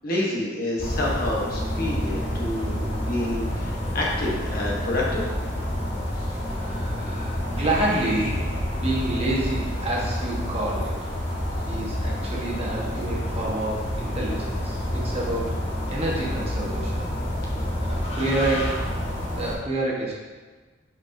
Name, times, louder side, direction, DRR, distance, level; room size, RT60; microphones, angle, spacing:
voice 1, 0.0-5.2, left 1 dB, 50° left, -3 dB, 1.1 m, -28 dB
sound 1, 0.8-19.6, equal, 30° left, 1.3 m, -28 dB
voice 2, 6.6-8.5 8.7-11.0 11.7-15.6 15.9-17.1 17.8-18.9 19.4-20.1, right 2 dB, 30° right, -4 dB, 1.1 m, -28 dB
8.4 x 4.4 x 2.6 m, 1.4 s
head